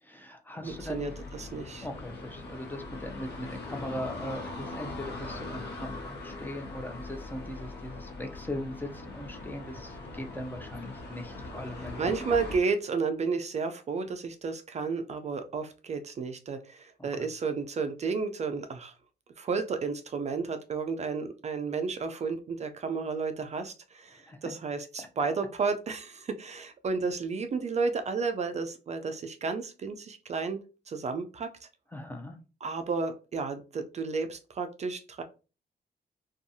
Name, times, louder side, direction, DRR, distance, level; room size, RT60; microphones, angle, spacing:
voice 1, 0.0-1.1 1.8-12.1 17.0-17.3 24.1-24.5 31.9-32.4, left 1 dB, 10° left, 5 dB, 0.5 m, -40 dB
sound 1, 0.6-12.6, left 2 dB, 80° left, 0.8 m, -41 dB
voice 2, 0.6-1.9 12.0-18.9 19.4-30.6 30.9-31.7 32.6-35.2, right 4 dB, 40° right, 7 dB, 0.4 m, -32 dB
2.6 x 2.3 x 2.6 m, 0.33 s
cardioid pair, 85°, 17 cm